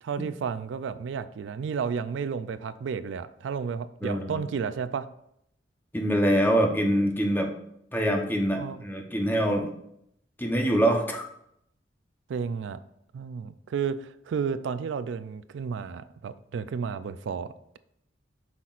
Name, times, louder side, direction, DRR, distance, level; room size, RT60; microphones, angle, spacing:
voice 1, 0.0-5.1 8.6-8.8 12.3-12.8 13.1-17.8, right 6 dB, 85° right, 14 dB, 0.4 m, -32 dB
voice 2, 4.0-4.4 5.9-7.5 7.9-9.7 10.4-11.2, equal, 10° left, 2 dB, 0.9 m, -24 dB
8.0 x 5.9 x 2.5 m, 0.75 s
head